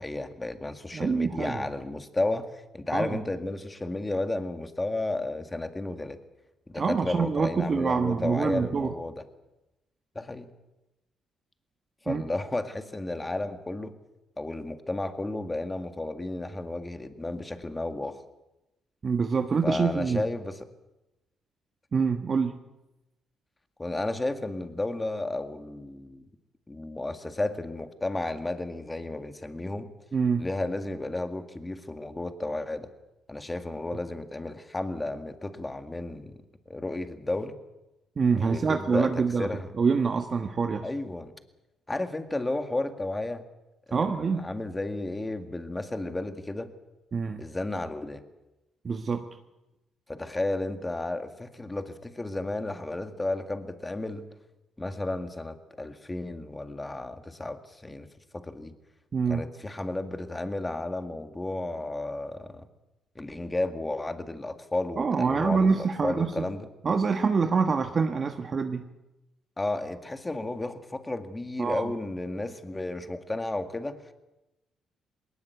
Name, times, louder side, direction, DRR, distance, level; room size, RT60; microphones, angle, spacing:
voice 1, 0.0-6.2 6.7-9.2 10.2-10.5 12.0-13.9 14.4-18.2 19.6-20.7 23.8-26.3 26.7-29.9 30.4-32.9 33.3-36.3 36.7-37.6 38.3-39.7 40.8-41.3 41.9-43.5 43.9-46.7 47.4-48.2 50.1-54.3 54.8-58.1 58.3-58.7 59.3-62.7 63.2-66.7 69.6-74.0, left 2 dB, 15° left, 8 dB, 2.0 m, -33 dB
voice 2, 0.9-1.6 2.9-3.1 6.7-8.9 12.1-12.2 19.0-20.2 21.9-22.5 30.1-30.4 38.2-39.5 39.8-40.9 43.9-44.5 47.1-47.4 48.8-49.2 59.1-59.4 65.0-66.3 66.8-68.8 71.6-71.9, right 5 dB, 40° right, 6 dB, 1.3 m, -25 dB
20.0 x 19.0 x 8.2 m, 0.97 s
cardioid pair, 90°, 0 cm